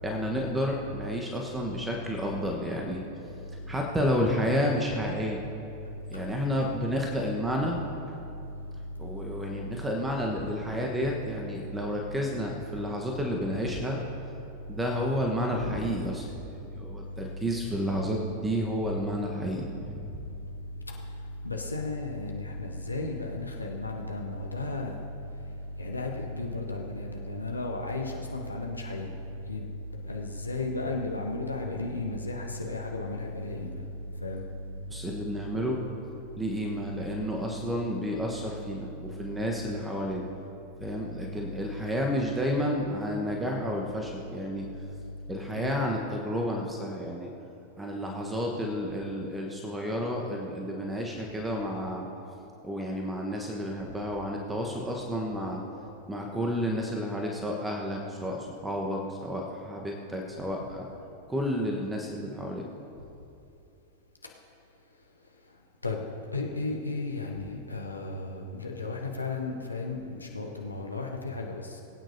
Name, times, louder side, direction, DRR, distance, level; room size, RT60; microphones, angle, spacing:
voice 1, 0.0-3.0 3.7-5.4 6.1-7.8 9.0-14.0 14.7-19.7 34.9-35.8 36.4-40.3 40.8-44.7 45.3-47.3 47.8-52.1 52.6-55.6 56.1-60.9 61.3-62.6, equal, 10° right, 0 dB, 1.1 m, -31 dB
voice 2, 15.5-15.9 19.7-19.9 21.4-25.0 25.8-29.1 29.5-29.6 30.0-33.8 34.2-34.4 41.0-41.1 45.5-45.8 55.7-55.9 65.8-66.0 66.3-71.6, left 3 dB, 80° left, 1 dB, 0.9 m, -34 dB
21.5 x 9.0 x 2.7 m, 2.7 s
figure-of-eight pair, 90°, 0 cm